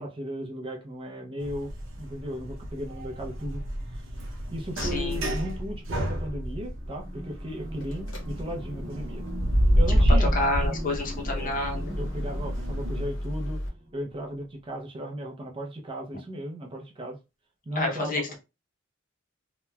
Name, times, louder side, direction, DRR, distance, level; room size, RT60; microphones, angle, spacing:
voice 1, 0.0-1.7 2.0-3.6 3.9-4.0 4.5-9.2 9.8-10.4 11.2-11.6 12.0-13.6 13.9-17.2 17.7-18.4, equal, 25° right, 0.5 m, -36 dB
sound 1, 1.4-13.1, equal, 70° right, 0.7 m, -36 dB
sound 2, 4.3-5.8 6.4-14.5, right 1 dB, 45° right, 1.0 m, -41 dB
voice 2, 4.8-5.2 10.2-11.9 17.8-18.4, left 2 dB, 40° left, 0.6 m, -29 dB
sound 3, 7.8-8.2 9.3-13.7, equal, 75° left, 0.8 m, -25 dB
2.9 x 2.1 x 2.2 m
head